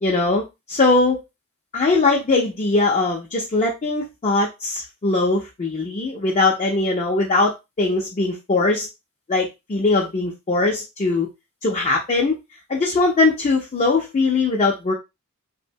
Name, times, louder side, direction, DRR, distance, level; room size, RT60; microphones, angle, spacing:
voice 1, 0.0-1.2 1.7-8.9 9.3-11.3 11.6-12.4 12.7-14.9, left 3 dB, 35° left, 0 dB, 0.4 m, -20 dB
2.8 x 2.1 x 2.6 m, 0.24 s
head